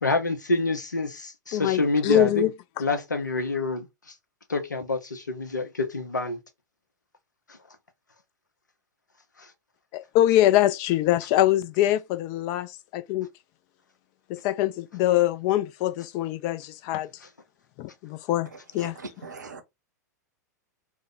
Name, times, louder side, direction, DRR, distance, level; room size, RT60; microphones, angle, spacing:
voice 1, 0.0-2.5 2.8-3.9 4.5-6.4, left 2 dB, 85° left, 0.6 m, -27 dB
voice 2, 1.5-2.5 9.9-13.3 14.3-17.1 17.8-18.5 18.7-19.0, left 14 dB, 40° left, 0.4 m, -23 dB
voice 3, 19.2-19.6, right 4 dB, 80° right, 0.7 m, -40 dB
2.7 x 2.1 x 3.6 m
figure-of-eight pair, 95°, 10 cm